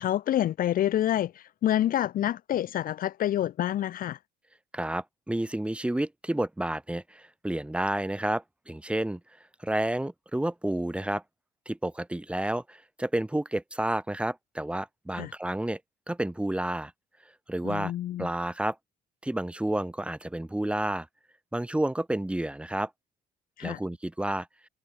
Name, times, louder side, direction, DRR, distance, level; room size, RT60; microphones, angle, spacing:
voice 1, 0.0-4.2 15.2-15.3 17.6-18.3 23.6-23.8, left 12 dB, 55° left, 0.9 m, -27 dB
voice 2, 4.7-9.2 9.6-11.2 11.7-15.8 16.1-16.9 17.5-17.9 18.2-18.8 19.2-21.1 21.5-22.9 23.6-24.5, right 1 dB, 5° right, 2.6 m, -30 dB
cardioid pair, 110°, 17 cm